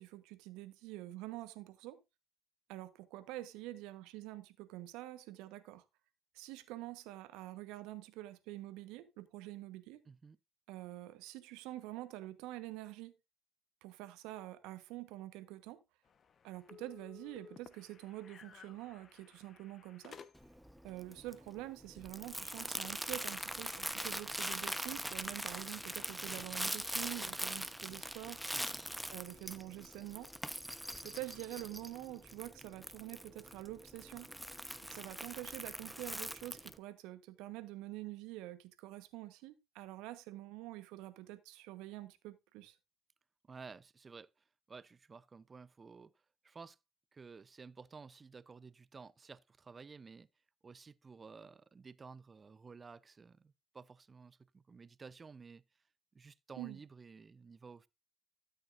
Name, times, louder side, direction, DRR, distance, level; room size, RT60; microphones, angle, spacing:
voice 1, 0.0-2.0 2.7-5.8 6.3-10.0 10.7-13.1 13.8-15.8 16.4-20.2 20.8-28.4 29.1-30.3 31.0-34.3 34.8-42.8 56.5-56.8, right 16 dB, 70° right, 1.2 m, -47 dB
voice 2, 10.1-10.4 28.5-28.7 43.5-44.3 44.7-46.1 46.4-46.8 47.1-50.3 50.6-55.6 56.1-57.9, right 5 dB, 30° right, 0.7 m, -53 dB
sound 1, 16.0-20.7, left 7 dB, 45° left, 1.1 m, -57 dB
Crumpling crinkling, 20.4-36.8, equal, ahead, 1.0 m, -42 dB
13.0 x 8.9 x 2.6 m
hypercardioid pair, 60°, 0 cm